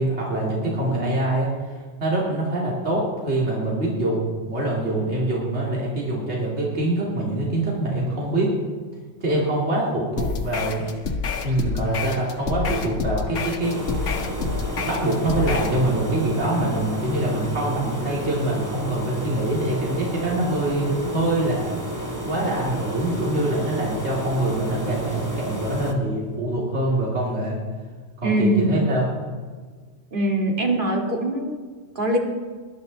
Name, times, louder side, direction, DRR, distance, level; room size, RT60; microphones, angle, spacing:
voice 1, 0.0-8.6 9.2-10.9 11.4-13.8 14.0-14.1 14.7-21.7 22.3-27.6 28.2-29.1, right 1 dB, 60° right, -4 dB, 2.9 m, -24 dB
sound 1, 10.2-15.8, left 4 dB, 80° left, 1.5 m, -28 dB
sound 2, 13.6-25.9, right 1 dB, 15° right, 1.5 m, -31 dB
voice 2, 28.2-28.7 30.1-31.6 32.0-32.2, right 1 dB, 45° right, 1 dB, 2.3 m, -22 dB
20.0 x 11.5 x 4.0 m, 1.5 s
omnidirectional pair, 1.3 m